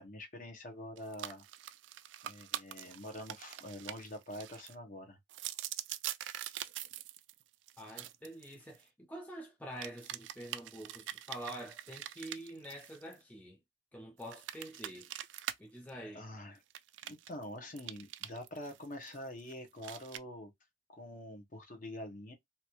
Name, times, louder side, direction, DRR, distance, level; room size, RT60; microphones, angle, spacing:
voice 1, 0.0-1.4 2.2-5.2 15.9-16.6 17.0-20.5 20.9-22.3, left 1 dB, 45° left, 0.9 m, -46 dB
sound 1, 1.0-4.7 5.3-8.8 9.8-13.1 14.2-15.6 15.9-16.0 16.7-17.4 17.8-19.5 19.8-20.2, right 12 dB, 80° right, 0.3 m, -44 dB
voice 2, 7.8-13.6 13.9-15.1 15.6-16.3, right 1 dB, 10° left, 0.4 m, -46 dB
2.8 x 2.3 x 3.0 m
head